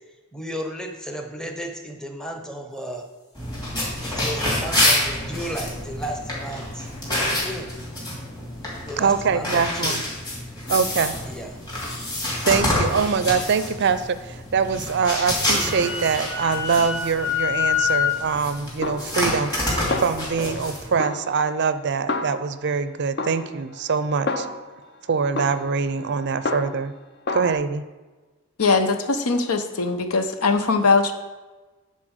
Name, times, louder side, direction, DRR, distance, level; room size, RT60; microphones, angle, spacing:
voice 1, 0.3-3.0 4.0-6.9 7.3-7.7 8.8-10.0 11.3-11.5, equal, 5° left, 3 dB, 0.9 m, -34 dB
sound 1, 3.3-20.9, left 1 dB, 20° left, 2.9 m, -27 dB
voice 2, 9.0-10.0 10.7-11.1 12.4-24.5 25.1-26.9 27.3-27.8, right 5 dB, 50° right, 12 dB, 0.4 m, -24 dB
Wind instrument woodwind instrument, 15.3-18.2, left 9 dB, 65° left, 1.8 m, -25 dB
Snare drum, 18.8-19.6 19.9-20.7 21.0-22.8 23.2-24.8 25.4-27.0 27.3-27.5, left 2 dB, 50° left, 0.6 m, -30 dB
voice 3, 28.6-31.1, left 4 dB, 85° left, 7 dB, 0.9 m, -21 dB
9.8 x 4.2 x 6.4 m, 1.2 s
head